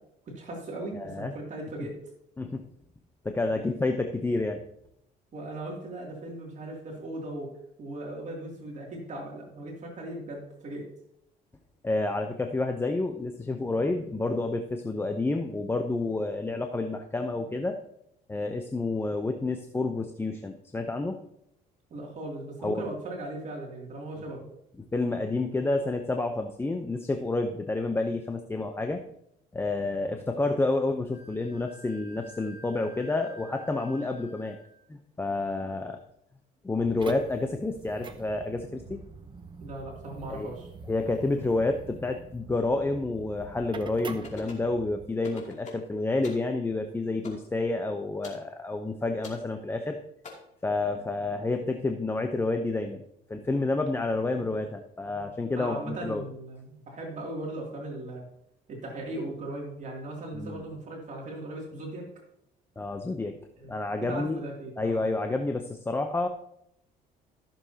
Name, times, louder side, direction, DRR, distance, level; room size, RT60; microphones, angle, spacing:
voice 1, 0.3-2.0 5.3-10.8 21.9-24.5 39.6-40.7 55.6-58.3 58.7-62.1 63.5-65.0, right 1 dB, 45° right, -1 dB, 2.7 m, -38 dB
voice 2, 0.9-1.3 2.4-2.7 3.2-4.6 11.8-17.8 18.3-21.2 22.6-22.8 24.9-29.0 29.5-34.6 34.9-36.0 36.6-39.0 40.3-40.5 40.9-50.0 50.6-53.0 53.3-56.2 60.3-60.6 62.8-63.4 63.7-64.4 64.8-66.3, left 2 dB, 15° left, 5 dB, 0.7 m, -29 dB
Wind instrument woodwind instrument, 31.1-34.8, equal, 60° left, 3.0 m, -50 dB
sound 1, 36.8-45.1, right 4 dB, 30° right, 0.8 m, -45 dB
sound 2, 44.2-44.7 45.2-45.9 46.2-46.5 47.2-47.5 48.2-48.4 49.2-49.4 50.2-50.3, left 4 dB, 45° left, 2.7 m, -43 dB
14.5 x 7.1 x 2.8 m, 0.76 s
cardioid pair, 110°, 17 cm